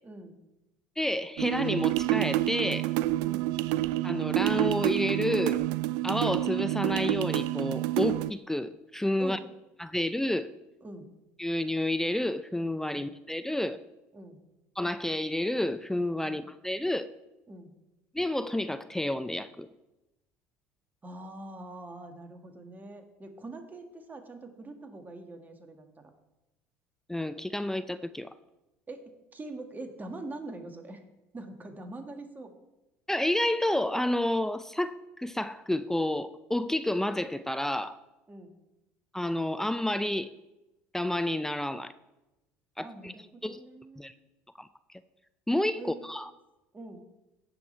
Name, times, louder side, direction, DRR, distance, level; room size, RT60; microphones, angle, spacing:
voice 1, 0.0-0.4 3.3-3.5 9.2-9.4 10.8-11.1 14.1-14.4 16.2-16.4 17.5-17.7 21.0-26.1 28.9-31.0 31.3-32.5 38.3-38.5 42.8-44.2 45.8-46.3 46.7-47.0, right 2 dB, 25° right, 5 dB, 1.8 m, -44 dB
voice 2, 1.0-2.9 4.0-5.6 6.0-9.4 9.8-10.5 11.4-13.8 14.8-17.1 18.1-19.7 27.1-28.3 33.1-38.0 39.1-40.3 40.9-41.9 42.8-43.1 43.4-43.6 44.0-44.1 44.6-44.7 45.5-46.3, left 1 dB, 5° left, 12 dB, 0.4 m, -30 dB
sound 1, 1.4-8.3, right 16 dB, 65° right, 0.3 m, -28 dB
16.5 x 6.1 x 3.3 m, 0.99 s
hypercardioid pair, 70°, 8 cm